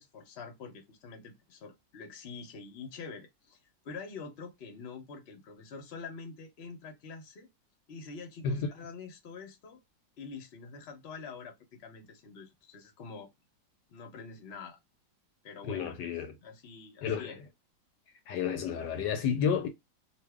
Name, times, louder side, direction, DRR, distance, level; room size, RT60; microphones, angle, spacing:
voice 1, 0.0-3.6 3.8-7.5 7.9-9.8 10.2-13.3 13.9-14.8 15.4-16.1 16.4-17.4, left 4 dB, 50° left, 0.8 m, -46 dB
voice 2, 15.7-16.3 17.0-17.3 18.3-19.7, left 7 dB, 75° left, 1.1 m, -31 dB
2.6 x 2.6 x 3.4 m
omnidirectional pair, 2.0 m